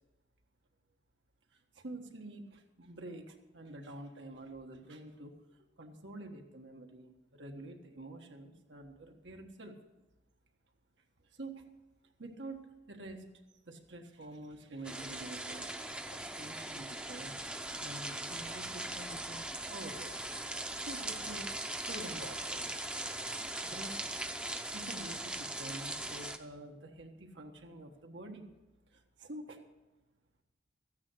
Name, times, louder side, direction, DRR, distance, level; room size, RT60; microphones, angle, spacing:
voice 1, 1.7-5.3 5.8-9.7 11.3-11.6 12.2-13.3 13.7-15.7 16.1-17.4 17.8-20.2 20.9-22.7 23.6-24.2 24.7-28.5 28.9-29.6, right 1 dB, 90° right, 3 dB, 1.5 m, -47 dB
sound 1, 14.8-26.4, right 1 dB, 5° right, 0.6 m, -40 dB
14.0 x 9.5 x 6.4 m, 1.1 s
head